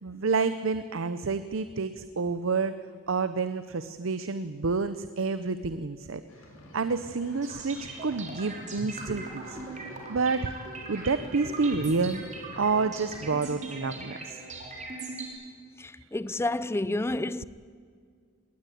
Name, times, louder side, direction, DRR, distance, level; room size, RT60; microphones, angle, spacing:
voice 1, 0.0-2.8 3.1-6.2 6.7-9.6 10.1-10.5 10.9-12.2 12.6-14.4, right 4 dB, 70° right, 0.7 m, -29 dB
sound 1, 6.3-13.5, left 1 dB, 85° left, 4.1 m, -51 dB
sound 2, 7.4-15.3, right 2 dB, 35° right, 3.9 m, -40 dB
voice 2, 15.8-17.4, left 2 dB, 15° left, 0.4 m, -30 dB
19.0 x 18.5 x 9.2 m
head